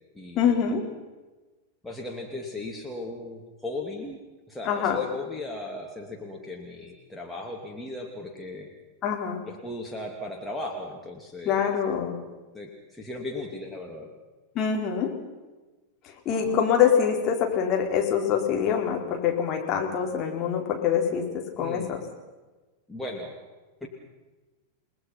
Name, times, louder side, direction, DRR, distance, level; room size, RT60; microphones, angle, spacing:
voice 1, 0.3-0.8 4.6-5.1 9.0-9.4 11.4-12.2 14.5-15.1 16.0-22.0, left 8 dB, 35° left, 1 dB, 4.4 m, -25 dB
voice 2, 1.8-4.2 4.5-8.7 9.5-11.7 12.5-14.1 16.3-16.6 21.6-21.9 22.9-23.3 23.8-23.9, left 2 dB, 5° left, 0 dB, 2.9 m, -37 dB
30.0 x 19.5 x 5.9 m, 1.2 s
figure-of-eight pair, 90°, 0 cm